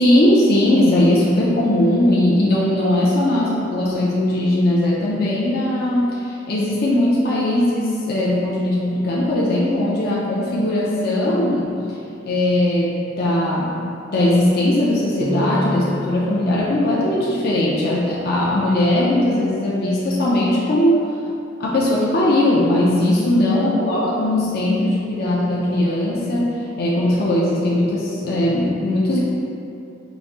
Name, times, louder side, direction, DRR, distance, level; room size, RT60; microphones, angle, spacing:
voice 1, 0.0-12.0 12.2-12.9 13.2-21.0 21.6-29.2, left 1 dB, 55° left, -6 dB, 0.6 m, -19 dB
sound 1, 15.2-18.6, equal, 30° right, 0.4 m, -30 dB
5.1 x 2.6 x 3.6 m, 2.6 s
head